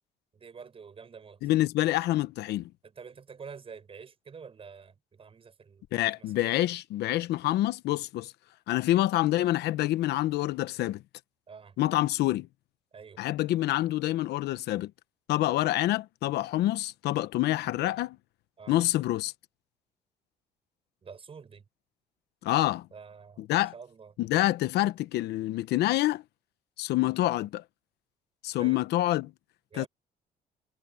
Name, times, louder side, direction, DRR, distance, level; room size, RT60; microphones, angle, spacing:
voice 1, 0.3-1.4 2.8-6.3 11.5-11.8 12.9-13.2 18.6-18.8 21.0-21.6 22.9-23.5 23.7-24.1 28.6-28.8 29.7-29.9, right 6 dB, 35° right, 6.1 m, -47 dB
voice 2, 1.4-2.7 5.9-8.3 8.7-11.0 11.8-12.5 13.2-14.9 15.3-18.2 18.7-19.3 22.4-22.9 23.4-23.7 24.2-26.2 26.8-27.6 28.4-29.3 29.8-29.9, left 15 dB, 80° left, 1.0 m, -27 dB
cardioid pair, 110°, 17 cm